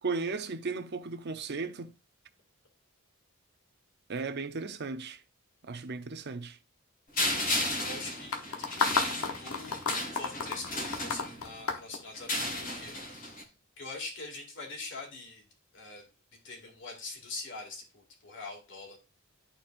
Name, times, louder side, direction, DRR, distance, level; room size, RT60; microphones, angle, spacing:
voice 1, 0.0-1.9 4.1-5.2 5.6-6.6, right 4 dB, 50° right, 0.6 m, -35 dB
sound 1, 7.2-11.6 12.1-13.4, left 1 dB, 40° left, 1.6 m, -34 dB
voice 2, 7.8-15.4 15.7-16.1 16.4-19.0, left 3 dB, 55° left, 2.2 m, -44 dB
sound 2, 8.3-12.7, left 5 dB, 75° left, 1.0 m, -32 dB
11.0 x 4.4 x 2.5 m
head